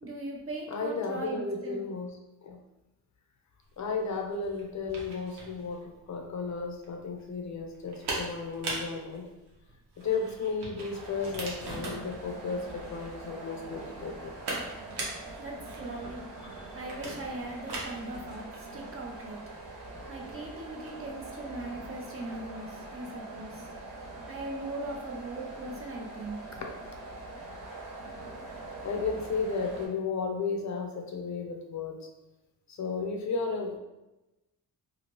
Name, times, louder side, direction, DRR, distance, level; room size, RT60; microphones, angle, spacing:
voice 1, 0.0-1.8 15.4-16.3 16.8-19.4 20.1-23.6 24.3-26.4 27.5-27.6, right 2 dB, 35° right, 0 dB, 0.4 m, -39 dB
voice 2, 0.7-2.1 2.4-2.6 3.8-9.3 10.0-14.3 26.5-26.7 28.8-32.1 32.7-33.8, left 4 dB, 45° left, 2 dB, 0.4 m, -34 dB
sound 1, 3.7-21.1, right 2 dB, 85° right, 0.9 m, -42 dB
sound 2, 10.9-29.9, right 2 dB, 50° right, 1.0 m, -44 dB
2.8 x 2.5 x 2.9 m, 0.98 s
wide cardioid pair, 160°, 39 cm